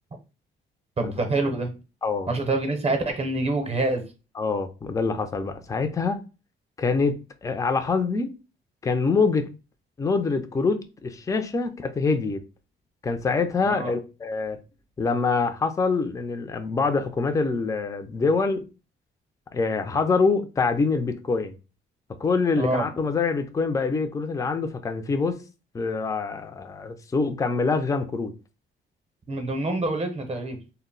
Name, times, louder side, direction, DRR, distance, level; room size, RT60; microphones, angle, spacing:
voice 1, 1.0-1.7 2.3-4.0 13.6-13.9 22.6-22.9 29.3-30.6, right 2 dB, 30° right, 0.7 m, -26 dB
voice 2, 2.0-2.3 4.4-6.2 6.8-8.3 8.8-9.5 10.0-12.4 13.0-14.6 15.0-18.6 19.5-21.5 22.2-25.4 25.7-28.3, left 4 dB, 15° left, 0.4 m, -25 dB
2.1 x 2.0 x 3.7 m
cardioid pair, 90°, 20 cm